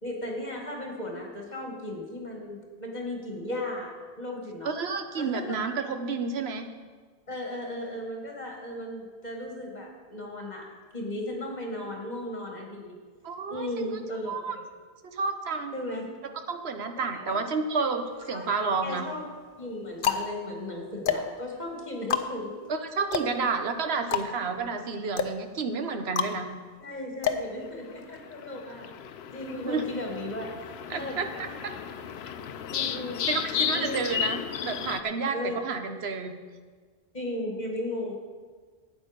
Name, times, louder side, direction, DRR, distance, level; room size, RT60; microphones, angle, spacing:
voice 1, 0.0-4.7 5.2-5.6 7.3-13.0 13.5-14.6 15.7-16.2 17.1-17.4 18.3-18.5 18.8-19.3 19.6-22.6 26.8-28.9 29.3-30.5 30.9-31.5 32.7-33.3 33.7-34.0 35.3-35.6 37.1-38.1, left 1 dB, 45° left, 0 dB, 2.2 m, -36 dB
voice 2, 4.6-6.7 13.2-14.0 14.3-14.6 15.0-15.7 16.5-19.1 22.7-26.5 29.5-29.8 30.9-31.3 31.6-31.7 33.3-36.3, right 4 dB, 85° right, 7 dB, 1.2 m, -30 dB
sound 1, 18.1-18.8 19.5-28.2, left 7 dB, 60° left, 0.9 m, -32 dB
sound 2, 28.2-35.0, left 9 dB, 90° left, 0.9 m, -34 dB
12.5 x 8.8 x 5.2 m, 1.5 s
omnidirectional pair, 1.0 m